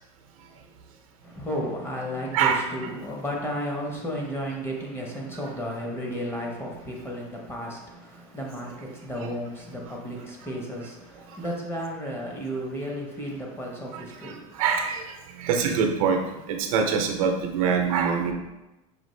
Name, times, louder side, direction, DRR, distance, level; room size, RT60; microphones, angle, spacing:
voice 1, 1.2-14.5, equal, 15° left, -1 dB, 0.8 m, -33 dB
voice 2, 13.9-15.0 15.4-16.2 16.5-18.3, right 6 dB, 75° right, 4 dB, 0.6 m, -24 dB
5.0 x 2.4 x 3.2 m, 1.0 s
supercardioid pair, 125°, 18 cm